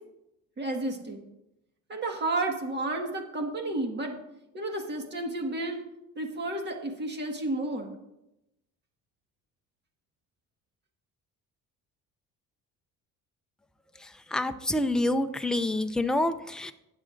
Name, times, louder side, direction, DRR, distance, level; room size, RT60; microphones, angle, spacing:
voice 1, 0.6-1.2 1.9-4.2 4.5-5.8 6.2-7.9, right 2 dB, 30° right, 3 dB, 1.6 m, -31 dB
voice 2, 14.3-16.7, left 1 dB, ahead, 7 dB, 0.3 m, -27 dB
20.5 x 7.4 x 2.5 m, 0.89 s
cardioid pair, 145°, 34 cm